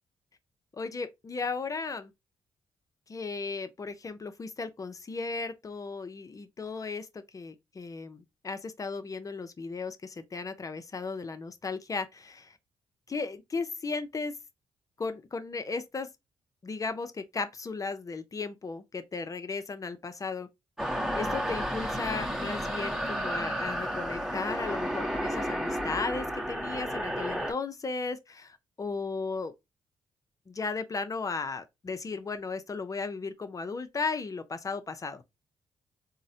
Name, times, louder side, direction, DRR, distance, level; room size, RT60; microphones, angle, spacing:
voice 1, 0.8-2.1 3.1-12.6 13.1-14.3 15.0-16.1 16.6-20.5 21.1-29.5 30.5-35.2, left 4 dB, 30° left, 0.5 m, -35 dB
sound 1, 20.8-27.5, equal, 5° right, 1.0 m, -32 dB
3.7 x 2.1 x 2.6 m
cardioid pair, 70°, 11 cm